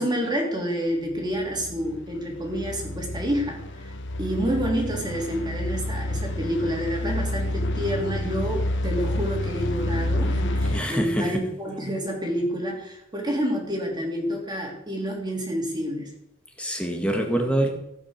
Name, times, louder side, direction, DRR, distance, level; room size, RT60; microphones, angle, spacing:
voice 1, 0.0-3.9 4.2-16.1, equal, 20° right, 1 dB, 3.2 m, -28 dB
sound 1, 1.1-10.8, left 1 dB, 55° left, 1.2 m, -29 dB
voice 2, 10.7-11.4 16.6-17.7, right 1 dB, 5° left, 2 dB, 2.0 m, -25 dB
15.5 x 9.0 x 6.7 m, 0.78 s
head